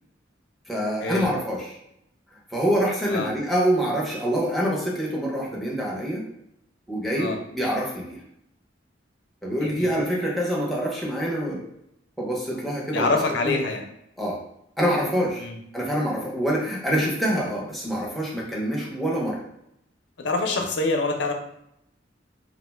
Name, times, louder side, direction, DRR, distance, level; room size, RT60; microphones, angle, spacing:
voice 1, 0.7-1.8 2.5-6.3 6.9-8.2 9.4-11.6 12.2-13.1 13.4-13.5 14.2-14.4 14.8-15.5 15.7-19.4, equal, ahead, -3 dB, 0.5 m, -25 dB
voice 2, 9.6-9.9 12.9-13.8 15.4-15.6 20.2-21.3, left 3 dB, 70° left, 4 dB, 0.5 m, -25 dB
2.4 x 2.1 x 3.3 m, 0.78 s
head